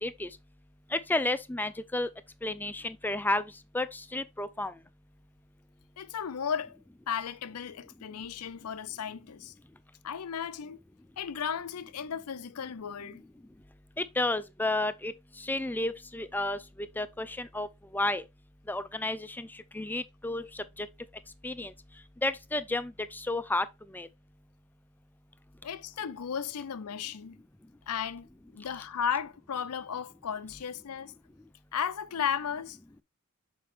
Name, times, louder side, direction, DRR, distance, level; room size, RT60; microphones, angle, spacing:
voice 1, 0.9-2.1 2.4-3.4 3.7-4.7 14.0-15.1 15.4-16.6 17.0-17.7 17.9-18.2 18.7-19.5 19.7-20.9 21.4-21.7 22.2-23.7 23.9-24.1, left 2 dB, 10° left, 0.4 m, -31 dB
voice 2, 6.0-6.8 7.1-9.5 10.0-10.8 11.2-13.2 25.6-27.4 27.9-28.3 28.5-31.1 31.7-32.8, left 7 dB, 85° left, 0.6 m, -35 dB
6.7 x 4.7 x 3.3 m
head